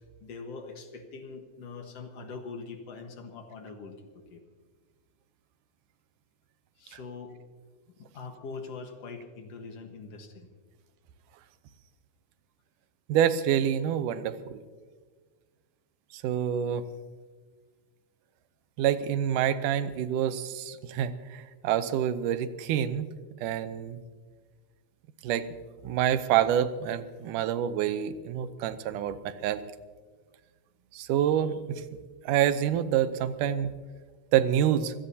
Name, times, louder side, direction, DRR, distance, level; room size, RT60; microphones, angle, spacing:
voice 1, 0.2-4.0 4.3-4.4 6.8-7.4 8.0-10.5 33.4-33.5, left 4 dB, 60° left, 4 dB, 2.3 m, -42 dB
voice 2, 13.1-14.6 16.1-16.8 18.8-23.1 23.4-24.0 25.2-25.5 25.8-29.7 30.9-31.8 32.2-33.7 34.3-34.9, right 10 dB, 85° right, 12 dB, 2.3 m, -27 dB
25.5 x 16.5 x 2.8 m, 1.5 s
omnidirectional pair, 3.5 m